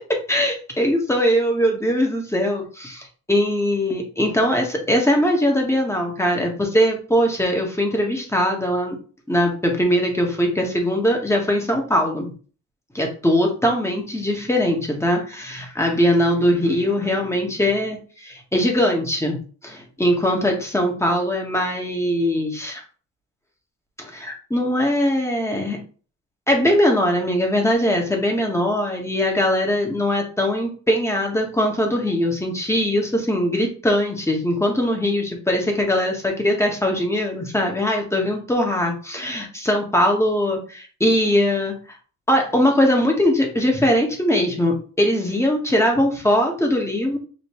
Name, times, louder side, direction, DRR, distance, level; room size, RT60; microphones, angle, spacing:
voice 1, 0.0-9.0 9.3-12.3 12.9-19.4 19.6-22.8 24.1-25.8 26.5-41.7 42.3-47.2, equal, 10° left, 2 dB, 1.5 m, -21 dB
5.2 x 3.1 x 3.1 m, 0.39 s
cardioid pair, 90°, 30 cm